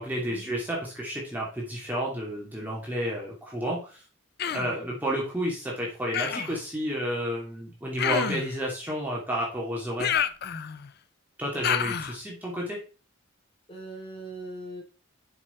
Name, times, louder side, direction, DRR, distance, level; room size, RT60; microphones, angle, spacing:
voice 1, 0.0-4.0 4.5-10.2 11.4-12.8, equal, 10° right, -4 dB, 2.3 m, -31 dB
Human voice, 4.4-4.8 6.1-6.6 8.0-8.6 10.0-10.9 11.6-12.2, left 8 dB, 50° left, 0.5 m, -28 dB
voice 2, 13.7-14.8, right 1 dB, 25° left, -1 dB, 3.1 m, -40 dB
7.5 x 6.1 x 4.3 m, 0.36 s
head